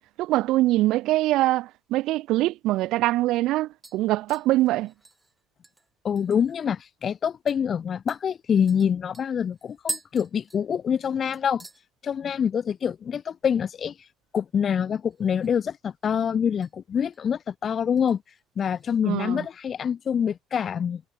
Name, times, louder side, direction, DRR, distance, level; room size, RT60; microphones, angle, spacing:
voice 1, 0.2-4.9 19.0-19.4, right 17 dB, 70° right, 0.6 m, -23 dB
sound 1, 3.8-6.7 7.0-7.1 7.5-7.6 8.1-11.1 11.3-11.8 12.2-12.6 12.8-12.9 15.0-15.7 16.0-16.7 17.1-17.4 18.0-18.9 19.2-19.3, right 2 dB, 15° right, 5.8 m, -42 dB
voice 2, 6.0-11.6 12.0-13.9 14.3-18.2 18.6-21.0, left 7 dB, 40° left, 0.5 m, -26 dB
supercardioid pair, 95°, 0 cm